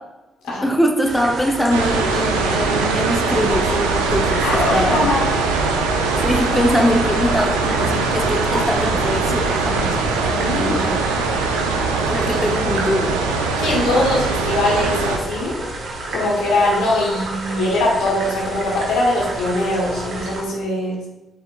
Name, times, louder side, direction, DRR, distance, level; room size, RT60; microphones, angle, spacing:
voice 1, 0.6-5.1 6.2-11.4 12.1-13.2, equal, 10° left, 1 dB, 0.8 m, -22 dB
sound 1, 1.0-20.4, right 2 dB, 65° right, 0.9 m, -30 dB
sound 2, 1.7-15.2, right 4 dB, 90° right, 0.4 m, -21 dB
voice 2, 4.4-5.4 10.3-10.8 13.6-15.6 16.1-21.0, left 1 dB, 75° left, -4 dB, 1.2 m, -21 dB
4.7 x 4.1 x 2.4 m, 1.0 s
hypercardioid pair, 40°, 0 cm